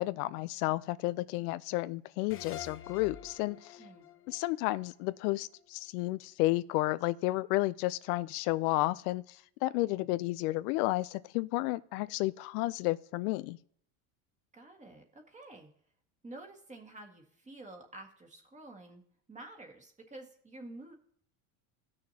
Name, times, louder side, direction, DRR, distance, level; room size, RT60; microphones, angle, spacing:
voice 1, 0.0-3.8 4.3-13.6, left 19 dB, 80° left, 0.5 m, -32 dB
sound 1, 2.3-5.6, left 9 dB, 30° left, 0.7 m, -48 dB
voice 2, 14.5-15.7 16.2-19.0 19.3-20.9, right 2 dB, 15° right, 1.7 m, -49 dB
16.0 x 6.5 x 2.8 m
supercardioid pair, 125°, 45 cm